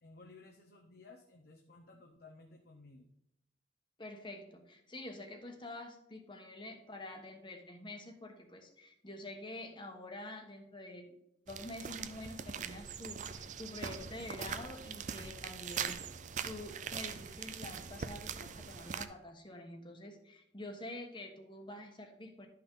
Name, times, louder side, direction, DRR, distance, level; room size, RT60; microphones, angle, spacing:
voice 1, 0.0-3.1, left 3 dB, 60° left, 3 dB, 0.8 m, -56 dB
voice 2, 4.0-11.2 11.5-16.0 16.4-22.5, left 1 dB, 25° left, 4 dB, 1.2 m, -47 dB
sound 1, 11.5-19.1, right 7 dB, 45° right, 0.5 m, -42 dB
sound 2, 13.8-19.2, equal, 75° left, 1.7 m, -63 dB
11.5 x 5.7 x 3.8 m, 0.81 s
head